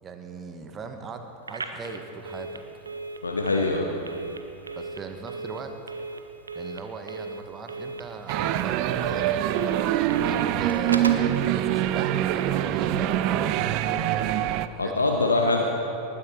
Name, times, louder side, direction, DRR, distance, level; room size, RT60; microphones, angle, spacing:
voice 1, 0.0-2.6 4.8-5.7 6.5-9.3 10.3-14.3 14.7-15.1, right 4 dB, 25° right, 6 dB, 1.2 m, -38 dB
Telephone, 1.4-11.3, right 3 dB, 75° right, 0.9 m, -37 dB
voice 2, 3.2-3.9 14.8-15.6, left 3 dB, 80° left, 2 dB, 0.9 m, -23 dB
sound 1, 8.3-14.7, right 12 dB, 40° right, 0.5 m, -24 dB
19.5 x 9.8 x 4.4 m, 3.0 s
figure-of-eight pair, 90°, 0 cm